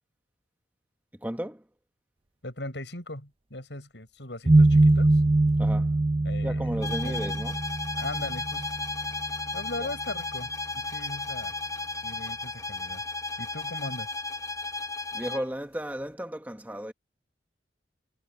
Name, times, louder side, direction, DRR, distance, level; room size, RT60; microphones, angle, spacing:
voice 1, 1.2-1.6 5.6-5.9 6.4-7.6 9.8-9.9 15.1-16.9, equal, 10° right, 1.2 m, -34 dB
voice 2, 2.4-5.2 6.2-7.2 8.0-8.8 9.5-11.5 12.0-13.0 13.4-14.1, left 2 dB, 80° left, 7.1 m, -39 dB
sound 1, 4.5-10.2, right 2 dB, 30° right, 0.6 m, -23 dB
sound 2, 6.8-15.5, left 3 dB, 20° left, 1.0 m, -34 dB
head